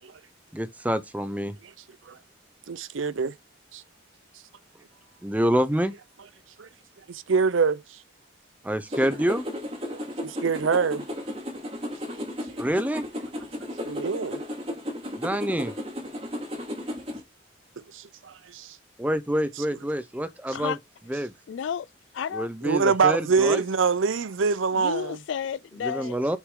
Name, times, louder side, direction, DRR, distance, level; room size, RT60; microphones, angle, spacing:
voice 1, 0.5-1.5 5.2-5.9 8.6-9.5 12.6-13.1 15.2-15.7 19.0-20.8 21.1-21.3 22.3-23.6 25.8-26.4, equal, 10° right, 0.6 m, -26 dB
voice 2, 2.7-3.3 3.7-3.8 6.6-6.7 7.1-8.0 9.9-11.0 12.1-12.2 12.5-12.6 13.8-14.4 17.9-18.8 22.6-25.2, right 5 dB, 85° right, 0.6 m, -25 dB
sound 1, 8.9-17.2, left 1 dB, 30° right, 2.4 m, -34 dB
voice 3, 21.5-21.9 22.1-22.5 23.0-23.2 23.5-23.6 24.7-26.2, left 7 dB, 75° left, 0.3 m, -32 dB
6.5 x 6.3 x 3.7 m
head